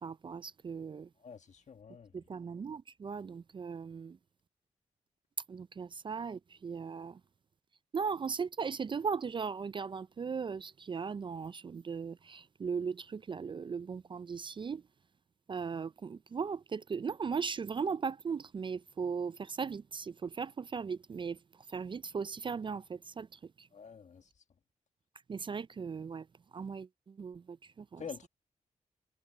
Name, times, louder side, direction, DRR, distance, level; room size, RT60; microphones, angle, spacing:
voice 1, 0.0-1.1 2.1-4.2 5.5-7.2 7.9-14.8 15.5-21.4 21.7-23.7 25.3-26.3 26.5-28.0, right 5 dB, 35° right, 0.3 m, -38 dB
voice 2, 1.2-2.1 23.7-24.3 28.0-28.3, left 6 dB, 60° left, 1.6 m, -47 dB
cardioid pair, 70°, 14 cm